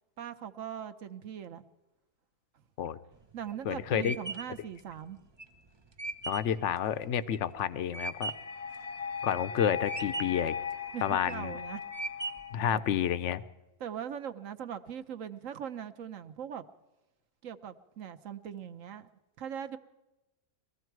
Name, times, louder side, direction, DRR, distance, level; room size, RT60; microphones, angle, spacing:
voice 1, 0.2-1.6 3.3-5.2 10.9-11.8 12.7-12.8 13.8-16.6 17.4-19.1 19.4-19.8, right 9 dB, 60° right, 9 dB, 1.1 m, -40 dB
sound 1, 3.1-8.6 9.0-9.6 9.9-10.5 11.0-11.5 11.9-12.6, right 3 dB, 40° right, 0.3 m, -39 dB
voice 2, 3.7-4.2 6.3-8.3 9.2-10.5 11.0-11.5 12.5-13.4, left 9 dB, 60° left, 14 dB, 0.8 m, -30 dB
sound 2, 8.0-13.1, left 7 dB, 85° left, 0.3 m, -39 dB
21.0 x 14.5 x 4.6 m, 1.0 s
omnidirectional pair, 1.7 m